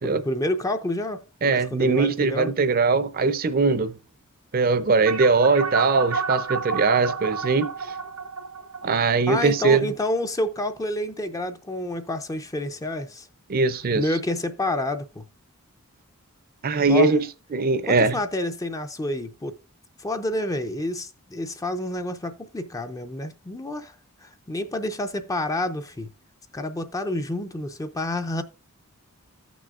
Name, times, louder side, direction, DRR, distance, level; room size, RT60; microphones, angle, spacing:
voice 1, 0.0-2.5 9.3-13.3 13.9-15.2 16.8-17.1 17.8-19.6 20.0-23.9 24.2-26.1 26.5-28.4, left 1 dB, 15° left, 0.5 m, -29 dB
voice 2, 1.4-3.9 4.5-7.7 8.8-9.9 13.5-14.0 16.6-17.2 17.5-18.2, right 4 dB, 45° right, 0.6 m, -21 dB
sound 1, 5.1-9.9, right 5 dB, 75° right, 1.0 m, -30 dB
15.0 x 6.1 x 2.4 m
head